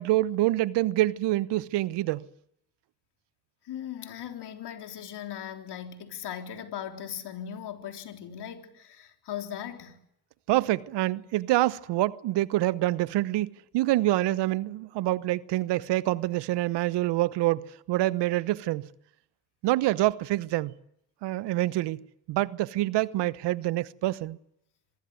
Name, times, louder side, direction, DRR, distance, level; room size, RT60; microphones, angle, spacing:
voice 1, 0.0-2.2 10.5-18.9 19.6-20.7 21.2-22.0 22.3-24.4, right 16 dB, 75° right, 1.0 m, -26 dB
voice 2, 3.6-10.0, left 9 dB, 70° left, 3.7 m, -38 dB
25.5 x 20.0 x 9.5 m
hypercardioid pair, 50°, 42 cm